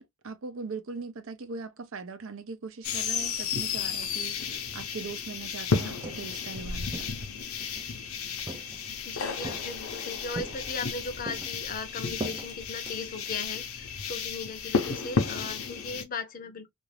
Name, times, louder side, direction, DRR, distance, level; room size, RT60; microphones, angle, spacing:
voice 1, 0.0-7.1, right 4 dB, 65° right, 0.6 m, -40 dB
sound 1, 2.8-16.0, left 5 dB, 80° left, 0.7 m, -33 dB
Walk footsteps, 5.8-6.4 6.9-7.9 8.5-9.0 9.4-10.0 10.4-11.0 11.3-13.5, right 2 dB, 20° right, 0.4 m, -41 dB
voice 2, 9.0-16.7, left 4 dB, 40° left, 0.6 m, -38 dB
2.5 x 2.4 x 3.1 m
head